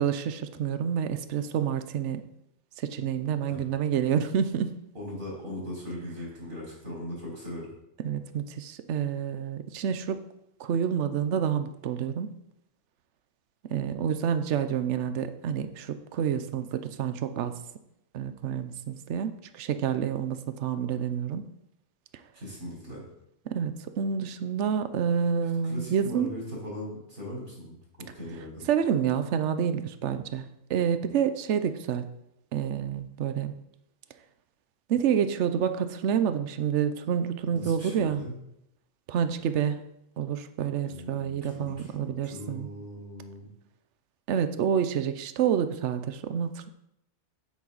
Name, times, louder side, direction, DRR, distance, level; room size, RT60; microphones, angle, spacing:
voice 1, 0.0-2.2 2.8-4.8 8.0-10.2 10.6-12.3 13.7-17.5 18.1-21.4 23.5-26.3 28.7-30.4 30.7-32.0 32.5-33.5 34.9-38.2 39.1-39.8 40.2-42.7 44.3-46.7, right 8 dB, 65° right, 11 dB, 1.0 m, -28 dB
voice 2, 4.9-7.7 22.3-23.1 25.6-28.7 37.5-38.4 40.8-43.5, left 1 dB, 80° right, -4 dB, 4.6 m, -39 dB
8.7 x 8.5 x 4.0 m, 0.80 s
omnidirectional pair, 1.4 m